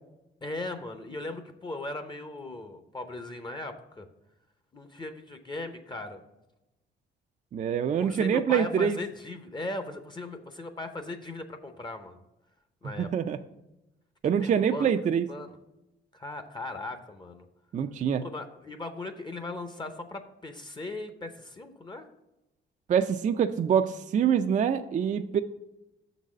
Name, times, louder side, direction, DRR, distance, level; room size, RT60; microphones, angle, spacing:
voice 1, 0.4-4.1 4.7-6.2 8.0-12.2 12.8-13.1 14.4-14.9 15.3-15.6 16.1-17.5 18.2-22.1, left 2 dB, 25° left, 7 dB, 0.7 m, -38 dB
voice 2, 7.5-9.0 13.0-13.4 14.2-15.3 17.7-18.2 22.9-25.4, right 8 dB, 40° right, 8 dB, 0.4 m, -25 dB
6.5 x 4.0 x 6.2 m, 0.92 s
cardioid pair, 100°, 19 cm